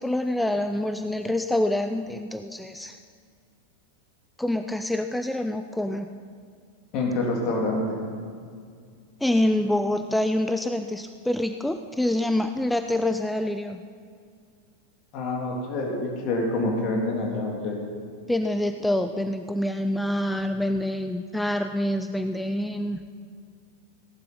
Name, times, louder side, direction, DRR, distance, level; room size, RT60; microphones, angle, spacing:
voice 1, 0.0-3.0 4.4-6.1 9.2-13.8 18.3-23.0, left 1 dB, 5° left, 8 dB, 0.5 m, -26 dB
voice 2, 6.9-8.0 15.1-17.8, left 2 dB, 40° left, -1 dB, 3.1 m, -27 dB
17.5 x 11.0 x 5.4 m, 2.1 s
figure-of-eight pair, 90°, 0 cm